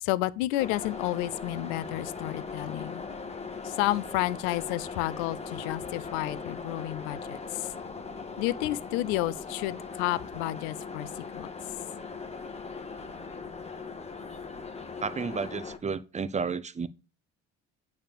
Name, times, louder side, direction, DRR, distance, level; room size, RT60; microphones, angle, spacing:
voice 1, 0.0-3.0 3.6-7.7 8.4-11.5, left 16 dB, 70° left, 0.6 m, -31 dB
sound 1, 0.6-15.8, left 4 dB, 20° left, 1.3 m, -39 dB
voice 2, 15.0-16.9, right 5 dB, 20° right, 0.7 m, -32 dB
8.8 x 3.5 x 6.8 m
hypercardioid pair, 60°, 35 cm